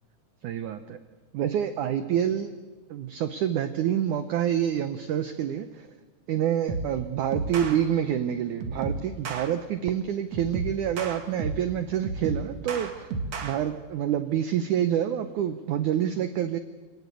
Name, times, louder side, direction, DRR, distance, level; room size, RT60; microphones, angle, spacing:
voice 1, 0.4-1.0 1.3-2.5 2.9-5.9 6.3-13.1 13.4-16.6, right 10 dB, 75° right, 10 dB, 1.8 m, -27 dB
sound 1, 6.7-7.0 7.3-7.8 8.6-9.5 10.3-11.7 12.0-13.5, right 3 dB, 50° right, 2.6 m, -32 dB
27.0 x 18.5 x 8.4 m, 1.3 s
omnidirectional pair, 4.7 m